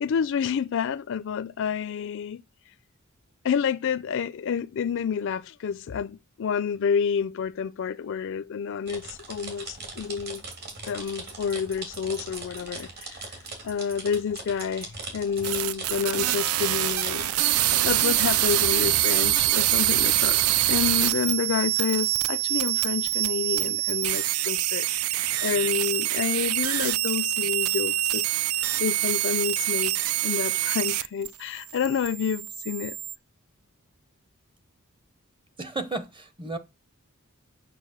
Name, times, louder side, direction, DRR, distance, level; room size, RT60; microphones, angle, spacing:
voice 1, 0.0-2.4 3.4-10.4 10.8-28.2 28.8-33.0, left 7 dB, 60° left, 0.4 m, -29 dB
sound 1, 8.9-18.9, right 3 dB, 50° right, 3.2 m, -40 dB
sound 2, 10.3-22.9, right 5 dB, 65° right, 2.0 m, -51 dB
sound 3, 15.4-31.3 31.6-33.1, right 14 dB, 85° right, 0.4 m, -25 dB
voice 2, 35.6-36.6, right 3 dB, 25° right, 0.9 m, -33 dB
6.6 x 6.3 x 6.4 m
head